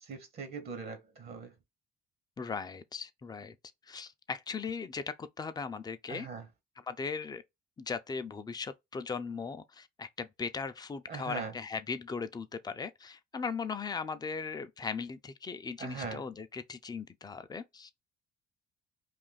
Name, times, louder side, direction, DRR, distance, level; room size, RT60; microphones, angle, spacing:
voice 1, 0.0-1.5 6.1-6.4 11.1-11.5 15.8-16.2, right 5 dB, 55° right, 1.0 m, -40 dB
voice 2, 2.4-3.6 3.8-6.3 6.8-7.4 7.8-17.9, left 5 dB, 20° left, 0.5 m, -38 dB
2.6 x 2.5 x 3.9 m
cardioid pair, 85°, 19 cm